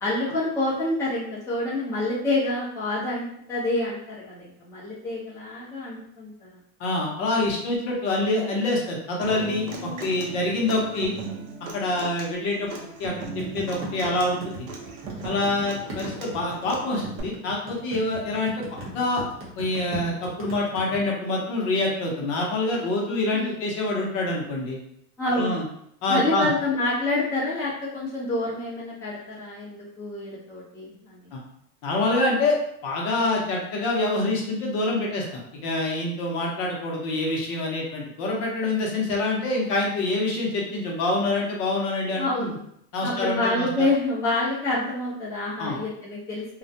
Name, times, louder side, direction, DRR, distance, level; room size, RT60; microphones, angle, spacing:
voice 1, 0.0-6.6 8.1-8.3 23.3-23.7 25.2-25.6 26.1-31.3 42.2-42.6 43.0-46.6, left 2 dB, 5° left, -9 dB, 0.6 m, -27 dB
voice 2, 6.8-11.1 11.7-12.7 13.0-14.5 15.2-19.2 19.6-24.8 25.3-25.6 26.0-26.5 31.3-31.4 31.8-32.6 32.8-35.2 35.6-42.5 42.9-43.9 45.6-45.8, left 2 dB, 50° left, -1 dB, 0.7 m, -26 dB
Human voice / Acoustic guitar, 9.2-17.2, right 3 dB, 70° right, 0.7 m, -38 dB
sound 1, 13.4-21.0, equal, 30° right, 0.8 m, -38 dB
2.3 x 2.1 x 2.7 m, 0.72 s
supercardioid pair, 140°, 41 cm